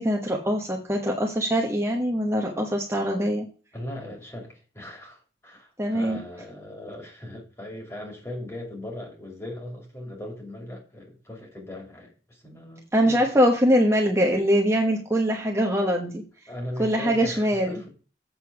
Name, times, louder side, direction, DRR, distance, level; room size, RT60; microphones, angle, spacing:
voice 1, 0.0-3.5 5.8-6.2 12.9-16.2 16.8-17.8, equal, 15° right, 1.1 m, -23 dB
voice 2, 3.7-13.2 16.5-18.0, left 1 dB, 15° left, 2.6 m, -39 dB
7.9 x 6.8 x 4.6 m
head